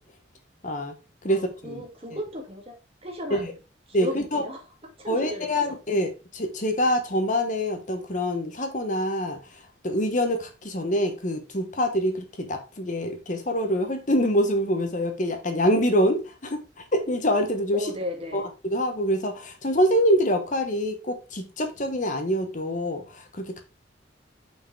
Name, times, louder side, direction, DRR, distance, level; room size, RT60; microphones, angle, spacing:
voice 1, 0.6-0.9 1.2-1.8 3.3-3.5 3.9-4.4 5.1-9.4 9.8-16.6 16.9-17.9 18.3-23.6, equal, 40° left, 1.2 m, -25 dB
voice 2, 1.3-3.6 3.9-4.6 5.0-5.8 17.7-18.5, left 1 dB, 30° right, 1.7 m, -35 dB
5.7 x 4.8 x 4.6 m
head